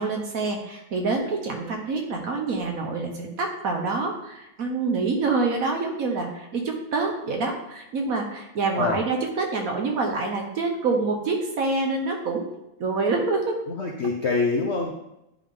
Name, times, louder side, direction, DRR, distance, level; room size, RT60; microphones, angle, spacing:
voice 1, 0.0-12.4 12.8-13.5, right 3 dB, 55° right, 2 dB, 1.2 m, -26 dB
voice 2, 13.7-14.9, left 4 dB, 60° left, 0 dB, 0.7 m, -25 dB
10.0 x 3.5 x 3.6 m, 0.87 s
omnidirectional pair, 2.0 m